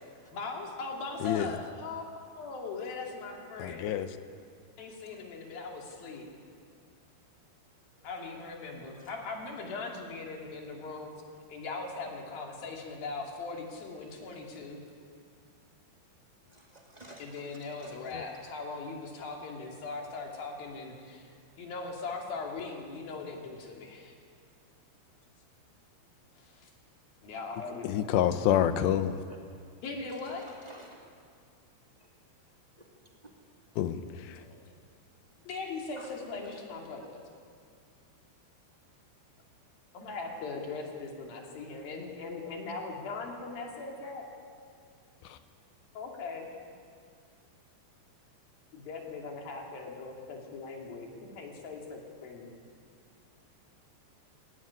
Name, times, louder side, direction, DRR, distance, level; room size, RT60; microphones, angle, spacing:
voice 1, 0.3-2.0 2.4-3.8 4.8-6.3 8.0-11.1 11.5-14.8 17.2-24.1 26.4-26.7 27.2-28.1 29.8-30.5 34.4-34.6 35.5-37.2 39.9-44.3 45.9-46.5 48.7-52.5, left 3 dB, 55° left, 0 dB, 4.3 m, -40 dB
voice 2, 1.2-1.5 3.6-4.1 18.2-18.3 27.8-29.2 33.8-34.0, left 10 dB, 80° left, 10 dB, 2.8 m, -27 dB
voice 3, 16.5-17.5 17.8-18.4 29.3-29.4 30.4-31.0 36.0-36.1 36.4-36.6, right 1 dB, 30° right, -1 dB, 0.7 m, -52 dB
21.0 x 16.5 x 9.8 m, 2.2 s
omnidirectional pair, 5.2 m